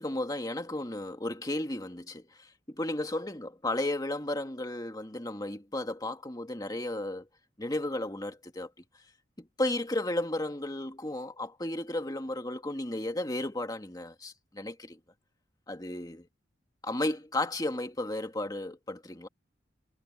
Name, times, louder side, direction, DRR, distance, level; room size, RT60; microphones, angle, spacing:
voice 1, 0.0-7.3 7.6-8.7 9.4-15.0 15.7-16.3 16.8-19.3, left 1 dB, 20° left, 2.0 m, -34 dB
head